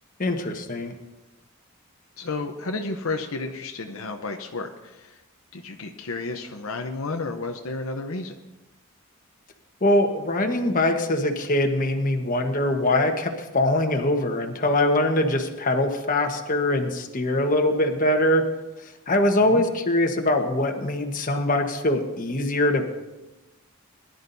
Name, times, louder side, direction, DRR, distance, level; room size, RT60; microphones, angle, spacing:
voice 1, 0.2-0.9 9.8-18.4 19.1-22.9, left 1 dB, 35° left, 4 dB, 1.2 m, -23 dB
voice 2, 2.2-5.2 5.5-8.4 19.4-19.6, left 3 dB, 70° left, 4 dB, 0.8 m, -32 dB
21.5 x 11.5 x 2.7 m, 1.1 s
head